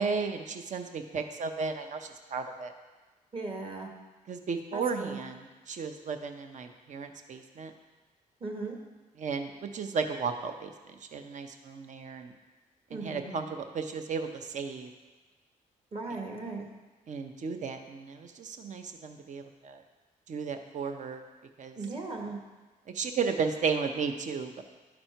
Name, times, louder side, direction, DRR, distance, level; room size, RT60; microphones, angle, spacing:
voice 1, 0.0-2.7 4.3-7.7 9.2-10.7 11.1-12.3 12.9-14.9 17.1-19.8 20.3-21.2 21.6-21.7 22.9-24.6, right 5 dB, 55° right, 6 dB, 0.7 m, -34 dB
voice 2, 3.3-3.9 4.7-5.2 8.4-8.8 12.9-13.3 15.9-16.6 21.7-22.4, right 3 dB, 40° right, 1 dB, 1.6 m, -37 dB
11.5 x 4.3 x 4.4 m, 1.3 s
cardioid pair, 75°, 15 cm